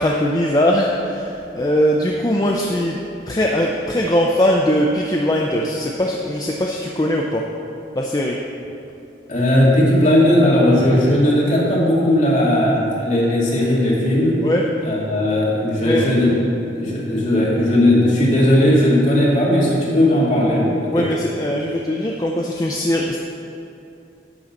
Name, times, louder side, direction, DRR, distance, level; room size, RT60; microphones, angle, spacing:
voice 1, 0.0-3.0 3.3-7.5 8.0-8.4 14.4-14.6 15.8-16.1 20.9-23.2, equal, 20° left, -1 dB, 0.4 m, -20 dB
voice 2, 9.3-14.3 14.8-16.4 16.7-21.1, left 1 dB, 40° left, -6 dB, 2.2 m, -17 dB
11.0 x 3.9 x 7.2 m, 2.7 s
head